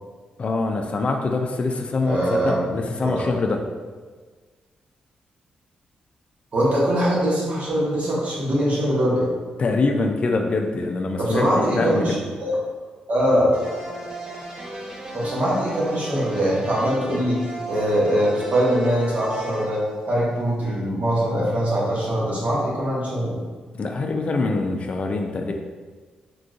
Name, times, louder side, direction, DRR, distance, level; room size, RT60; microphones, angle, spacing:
voice 1, 0.4-3.6 9.6-12.2 23.7-25.5, left 3 dB, 45° left, 3 dB, 0.3 m, -24 dB
voice 2, 2.1-2.6 3.0-3.1 6.5-9.3 11.2-12.2 12.4-12.5 13.1-13.6 15.1-23.4, equal, 55° right, -5 dB, 1.1 m, -22 dB
sound 1, 13.5-20.5, right 1 dB, 30° right, 0.7 m, -34 dB
3.7 x 2.6 x 2.4 m, 1.5 s
cardioid pair, 75°, 3 cm